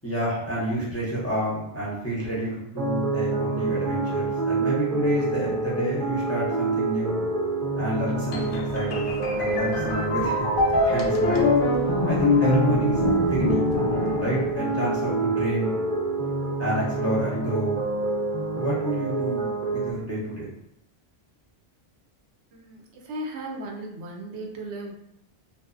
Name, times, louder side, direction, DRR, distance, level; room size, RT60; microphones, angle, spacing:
voice 1, 0.0-7.3 7.8-10.4 10.8-11.5 12.1-13.0 13.3-13.6 14.1-15.7 16.6-17.8 18.5-20.5, right 1 dB, 20° left, -7 dB, 0.5 m, -29 dB
sound 1, 2.8-19.9, right 3 dB, 55° right, 0.7 m, -27 dB
sound 2, 8.3-15.0, left 3 dB, 65° left, 0.6 m, -25 dB
voice 2, 22.5-24.9, right 1 dB, 90° right, 1 dB, 0.8 m, -36 dB
2.6 x 2.1 x 2.4 m, 0.79 s
omnidirectional pair, 1.1 m